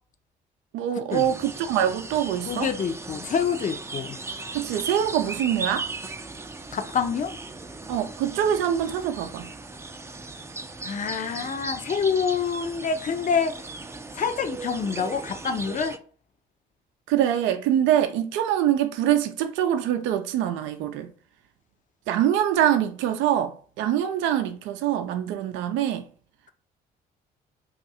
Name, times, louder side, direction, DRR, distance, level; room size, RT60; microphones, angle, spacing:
voice 1, 0.7-2.7 4.5-5.9 7.9-9.5 17.1-21.1 22.1-26.1, right 10 dB, 75° right, 0.4 m, -24 dB
sound 1, 1.1-16.0, right 3 dB, 15° right, 0.5 m, -37 dB
voice 2, 2.4-4.2 6.7-7.4 10.8-13.5 14.2-16.0, left 6 dB, 40° left, 0.6 m, -26 dB
2.6 x 2.4 x 4.1 m
supercardioid pair, 60°, 20 cm